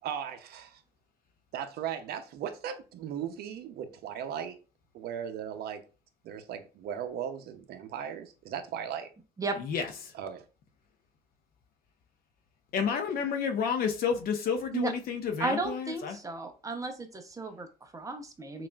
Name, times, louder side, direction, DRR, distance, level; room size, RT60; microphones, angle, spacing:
voice 1, 0.0-0.8 1.5-4.6 4.9-5.8 6.2-9.1 10.1-10.5, right 9 dB, 70° right, 0.7 m, -37 dB
voice 2, 9.6-10.1 12.7-16.2, left 6 dB, 60° left, 0.8 m, -30 dB
voice 3, 15.4-18.7, right 2 dB, 20° right, 0.7 m, -34 dB
5.8 x 2.5 x 2.3 m
cardioid pair, 110°, 17 cm